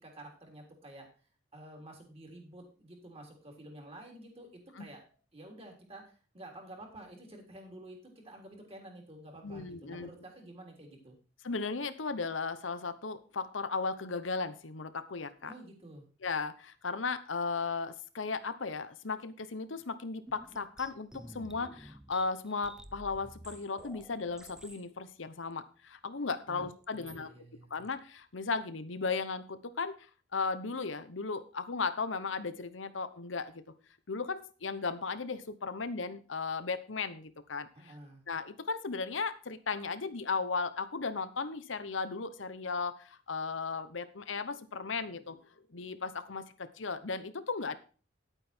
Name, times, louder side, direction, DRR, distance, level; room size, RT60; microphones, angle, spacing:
voice 1, 0.0-1.1 1.5-5.0 5.3-11.1 15.5-16.0 26.5-26.7 26.9-27.7 37.7-38.2, right 1 dB, 30° right, 2 dB, 3.6 m, -50 dB
voice 2, 9.4-10.1 11.4-15.5 16.2-27.3 27.7-30.0 30.3-33.6 34.1-37.9 38.3-45.4 45.7-47.7, left 4 dB, 80° left, 12 dB, 0.9 m, -36 dB
sound 1, 20.2-24.9 25.5-25.6 26.8-27.2 27.7-28.0, right 1 dB, 5° right, 0.5 m, -51 dB
10.0 x 8.9 x 4.4 m, 0.37 s
head